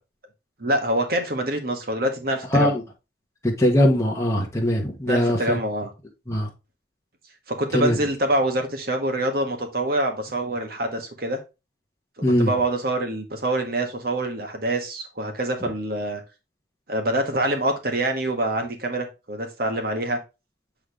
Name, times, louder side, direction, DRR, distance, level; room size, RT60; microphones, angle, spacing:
voice 1, 0.6-2.8 5.1-5.9 7.5-11.4 12.4-16.2 16.9-20.2, right 1 dB, 50° right, 1.7 m, -25 dB
voice 2, 3.4-5.6 6.3-6.5 7.7-8.0 12.2-12.5, left 1 dB, 15° left, 1.3 m, -20 dB
8.1 x 3.9 x 3.4 m
head